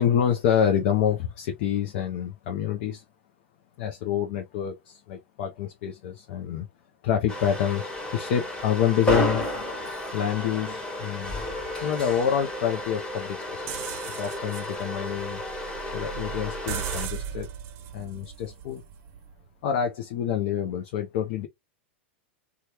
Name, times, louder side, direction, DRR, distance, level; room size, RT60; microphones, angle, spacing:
voice 1, 0.0-3.0 3.8-6.7 7.0-9.5 10.1-11.4 11.8-13.8 14.1-15.4 15.9-17.5 17.9-18.8 19.6-21.5, left 9 dB, 60° left, 0.6 m, -27 dB
sound 1, 7.3-17.1, left 1 dB, 15° left, 1.3 m, -32 dB
sound 2, 13.7-19.5, right 10 dB, 45° right, 0.6 m, -38 dB
3.1 x 2.3 x 2.8 m
hypercardioid pair, 105°, 6 cm